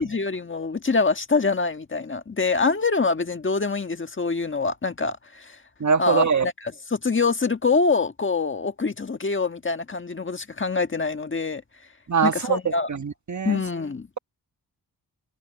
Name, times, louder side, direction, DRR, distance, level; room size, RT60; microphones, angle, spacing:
voice 1, 0.0-5.6 6.0-11.6 12.2-12.9 13.4-14.1, left 4 dB, 30° left, 1.6 m, -25 dB
voice 2, 5.8-6.5 12.1-12.6 12.9-13.6, right 6 dB, 50° right, 1.5 m, -22 dB
wide cardioid pair, 85°, 38 cm